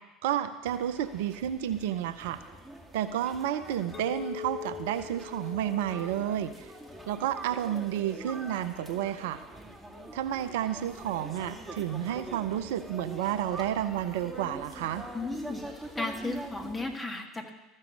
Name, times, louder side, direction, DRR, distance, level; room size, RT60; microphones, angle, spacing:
voice 1, 0.2-2.4 2.9-6.7 7.1-9.4 10.1-15.0, right 11 dB, 70° right, 11 dB, 0.6 m, -31 dB
sound 1, 0.6-17.0, right 1 dB, 5° right, 2.2 m, -45 dB
Chink clink, 3.9-8.4, left 10 dB, 35° left, 0.7 m, -44 dB
voice 2, 15.1-15.6 16.0-17.5, left 2 dB, 15° left, 3 dB, 1.8 m, -34 dB
13.5 x 6.5 x 7.3 m, 1.1 s
hypercardioid pair, 75°, 0 cm